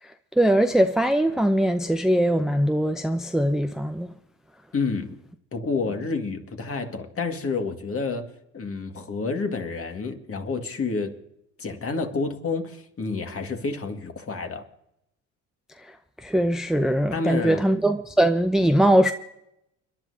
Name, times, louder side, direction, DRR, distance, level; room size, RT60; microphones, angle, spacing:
voice 1, 0.4-4.1 16.2-19.1, right 1 dB, ahead, 0.6 m, -21 dB
voice 2, 4.7-5.2 5.5-11.1 11.6-14.7 17.1-17.6, left 4 dB, 35° left, 2.0 m, -29 dB
30.0 x 11.0 x 2.8 m
supercardioid pair, 70°, 38 cm